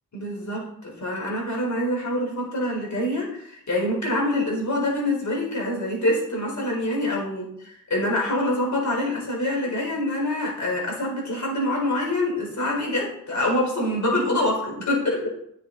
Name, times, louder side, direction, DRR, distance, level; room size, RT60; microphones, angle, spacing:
voice 1, 0.1-7.4 7.9-15.3, left 1 dB, 55° left, -3 dB, 4.7 m, -25 dB
10.0 x 7.2 x 4.3 m, 0.73 s
cardioid pair, 50°, 35 cm